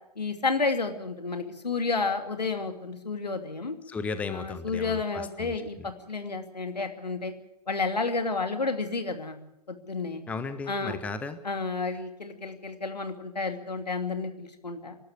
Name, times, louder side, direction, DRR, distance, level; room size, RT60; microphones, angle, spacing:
voice 1, 0.2-3.7 4.3-5.8 6.1-7.3 7.7-9.4 9.7-10.2 10.7-11.0 11.4-15.0, left 4 dB, 80° left, 6 dB, 2.8 m, -31 dB
voice 2, 3.9-5.9 10.3-11.4, left 4 dB, 5° left, 10 dB, 0.9 m, -35 dB
26.0 x 12.5 x 8.1 m, 0.82 s
figure-of-eight pair, 125°, 21 cm